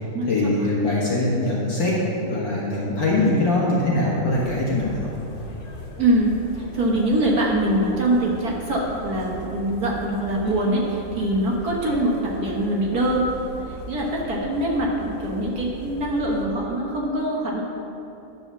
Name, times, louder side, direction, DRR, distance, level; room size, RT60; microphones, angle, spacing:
voice 1, 0.3-2.0 2.2-5.1, left 2 dB, 60° left, -6 dB, 2.2 m, -22 dB
sound 1, 4.3-16.5, equal, 40° left, 0.8 m, -39 dB
voice 2, 6.0-13.2 13.9-17.6, right 1 dB, 50° right, -3 dB, 1.5 m, -23 dB
10.5 x 5.0 x 6.9 m, 3.0 s
omnidirectional pair, 2.4 m